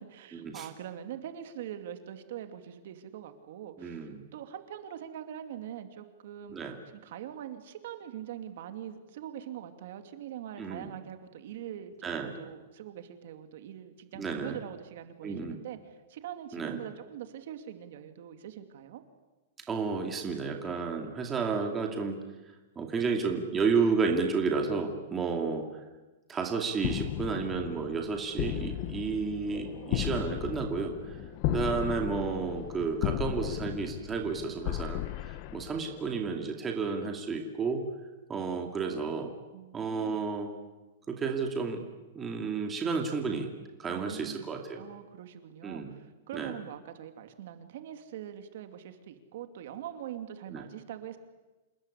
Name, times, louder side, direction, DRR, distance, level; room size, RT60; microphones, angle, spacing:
voice 1, 0.0-6.6 6.9-19.0 39.5-40.2 43.9-51.2, right 10 dB, 50° right, 8 dB, 2.5 m, -43 dB
voice 2, 3.8-4.2 6.5-6.8 10.6-10.9 12.0-12.3 14.2-14.6 15.2-15.6 16.5-16.8 19.7-22.2 22.8-25.7 26.3-31.2 31.5-37.8 38.3-39.3 39.7-40.5 41.1-41.8 42.1-43.5 43.8-44.8 45.6-45.9 46.3-46.5 50.5-50.6, right 5 dB, 10° right, 3 dB, 2.3 m, -31 dB
sound 1, 26.8-36.3, left 14 dB, 35° left, 0.9 m, -35 dB
28.0 x 20.0 x 9.9 m, 1.1 s
supercardioid pair, 170°, 0 cm